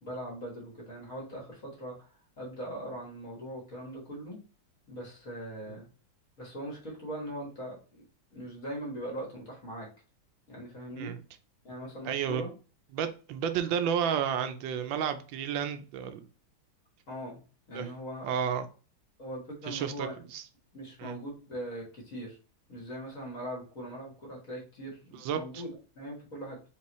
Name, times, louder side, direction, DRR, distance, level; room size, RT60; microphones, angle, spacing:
voice 1, 0.0-2.0 2.4-4.4 4.9-5.9 6.4-8.0 8.3-9.9 10.5-11.1 11.6-12.5 17.1-17.4 17.7-18.4 19.2-20.2 20.7-22.4 22.7-26.6, right 1 dB, 45° left, -2 dB, 1.8 m, -40 dB
voice 2, 12.0-12.4 12.9-16.2 17.7-17.9 18.2-18.7 19.7-20.4 21.0-21.2 25.1-25.6, right 8 dB, 75° right, 9 dB, 1.3 m, -31 dB
4.5 x 3.2 x 3.0 m, 0.36 s
omnidirectional pair, 2.2 m